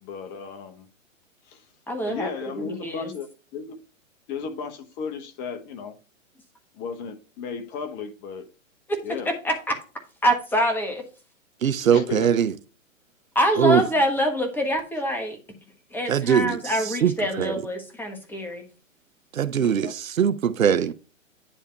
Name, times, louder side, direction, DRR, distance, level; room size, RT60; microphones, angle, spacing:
voice 1, 0.0-0.9 1.5-1.6 2.1-3.3 3.5-3.7 4.3-5.9 6.7-8.4 9.0-9.3 11.8-12.3 19.6-19.9, left 5 dB, 25° left, 1.0 m, -34 dB
voice 2, 1.9-2.3 2.5-3.1 8.9-9.7 10.2-11.1 13.3-15.4 15.9-18.7, equal, 5° left, 1.3 m, -25 dB
voice 3, 11.6-12.5 13.6-13.8 16.1-16.6 17.0-17.6 19.3-20.9, right 8 dB, 85° right, 0.7 m, -21 dB
10.0 x 3.4 x 4.4 m
hypercardioid pair, 125°, 40 cm